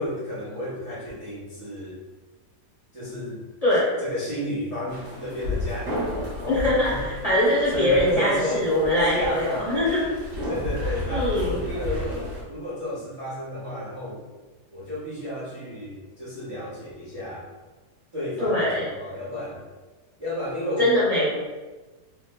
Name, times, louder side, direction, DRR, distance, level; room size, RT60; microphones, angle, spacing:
voice 1, 0.0-2.0 2.9-3.4 4.0-7.1 7.7-8.7 9.0-10.0 10.5-14.3 14.7-17.5 18.1-19.6 20.2-20.9, left 1 dB, 35° right, -10 dB, 0.5 m, -32 dB
sound 1, 4.9-12.4, left 1 dB, 55° right, 1.4 m, -32 dB
voice 2, 6.5-10.0 11.1-11.6 18.4-18.8 20.8-21.3, left 1 dB, 35° left, -10 dB, 0.6 m, -22 dB
3.1 x 2.0 x 3.4 m, 1.2 s
omnidirectional pair, 1.7 m